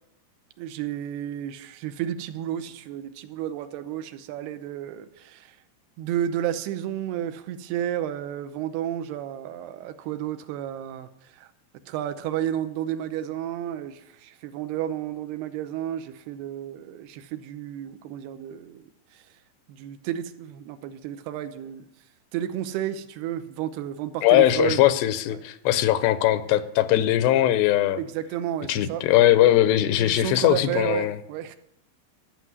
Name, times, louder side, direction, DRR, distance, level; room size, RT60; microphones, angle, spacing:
voice 1, 0.6-5.6 6.0-11.5 11.9-19.3 19.7-21.9 22.3-24.8 25.3-25.4 28.0-29.0 30.0-31.6, right 11 dB, 85° right, 10 dB, 2.7 m, -32 dB
voice 2, 24.2-28.0 28.7-31.2, left 13 dB, 90° left, 13 dB, 2.8 m, -20 dB
12.5 x 6.1 x 9.4 m, 0.80 s
omnidirectional pair, 4.7 m